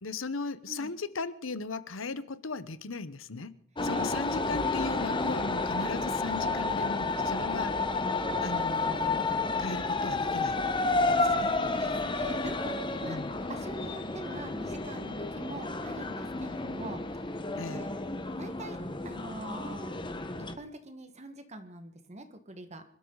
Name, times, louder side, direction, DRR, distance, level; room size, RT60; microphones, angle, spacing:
voice 1, 0.0-3.6 3.8-7.8 8.4-9.2 9.6-10.6 11.2-11.5 13.0-13.3 17.6-17.8, left 4 dB, 80° left, 1.0 m, -37 dB
sound 1, 3.8-20.6, left 3 dB, 25° left, 1.2 m, -31 dB
voice 2, 10.9-13.2 13.5-17.4 17.7-17.9 18.4-20.0 20.6-22.8, right 1 dB, 35° right, 1.6 m, -45 dB
26.5 x 13.0 x 4.0 m
head